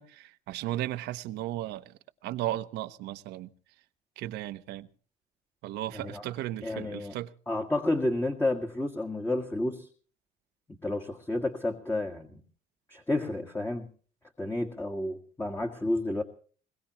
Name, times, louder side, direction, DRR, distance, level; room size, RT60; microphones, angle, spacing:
voice 1, 0.0-1.9 2.2-3.5 4.2-4.9 5.6-7.3, right 14 dB, 85° right, 1.0 m, -35 dB
voice 2, 6.6-7.2 7.5-9.9 10.8-12.3 12.9-13.9 14.4-16.2, left 2 dB, 15° left, 1.7 m, -30 dB
21.5 x 21.5 x 3.0 m
cardioid pair, 110°, 17 cm